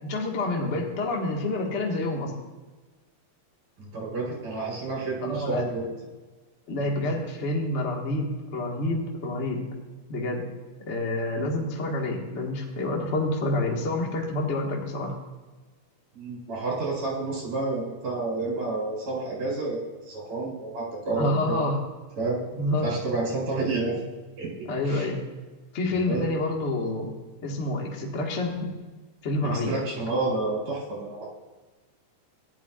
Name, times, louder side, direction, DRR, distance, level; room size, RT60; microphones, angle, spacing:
voice 1, 0.0-2.3 5.2-5.7 6.7-9.7 10.1-10.5 10.9-15.2 21.1-21.8 22.5-22.9 23.9-24.0 24.7-25.2 25.7-27.1 27.4-28.7 29.2-29.7, left 2 dB, 35° left, -1 dB, 1.2 m, -28 dB
voice 2, 3.8-5.9 16.1-19.8 20.1-21.6 22.2-22.4 22.8-24.0 24.4-24.5 24.8-25.1 26.1-26.3 29.4-31.3, right 3 dB, 65° right, -3 dB, 5.7 m, -30 dB
16.5 x 11.0 x 2.5 m, 1.3 s
omnidirectional pair, 3.9 m